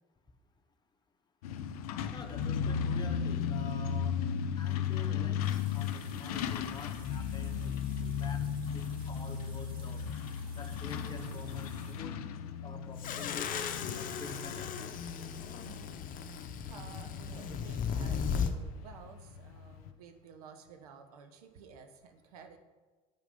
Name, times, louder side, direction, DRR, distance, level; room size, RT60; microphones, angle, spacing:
Truck, 1.4-19.9, left 7 dB, 85° left, 0.6 m, -36 dB
voice 1, 2.1-4.2 4.6-10.1 10.5-12.2 12.6-13.5 13.9-14.7, left 3 dB, 25° left, 5 dB, 1.0 m, -48 dB
sound 1, 5.4-12.1, right 2 dB, 25° right, 2.6 m, -58 dB
sound 2, 13.0-18.5, left 7 dB, 45° left, 0.8 m, -36 dB
voice 2, 15.6-16.3 16.7-22.6, right 6 dB, 85° right, 7 dB, 0.9 m, -53 dB
8.6 x 5.0 x 5.2 m, 1.3 s
hypercardioid pair, 75°, 19 cm